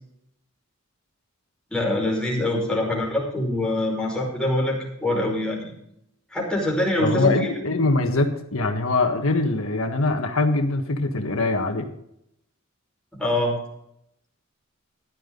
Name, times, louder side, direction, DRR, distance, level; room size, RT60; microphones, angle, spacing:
voice 1, 1.7-5.7 6.3-7.3 13.2-13.6, left 1 dB, 5° left, -3 dB, 5.2 m, -24 dB
voice 2, 7.0-11.9, left 2 dB, 85° left, 5 dB, 1.5 m, -23 dB
15.0 x 11.5 x 4.0 m, 0.76 s
head